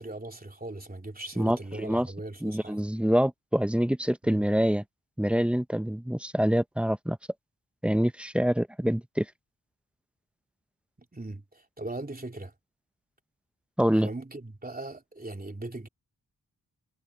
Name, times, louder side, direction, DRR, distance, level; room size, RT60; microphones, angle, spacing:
voice 1, 0.0-2.9 4.2-4.5 11.1-12.5 13.9-15.9, right 2 dB, 25° right, 3.4 m, -39 dB
voice 2, 1.4-2.1 2.4-4.8 5.2-7.2 7.8-9.3 13.8-14.1, equal, 5° right, 0.6 m, -26 dB
wide cardioid pair, 80°, 37 cm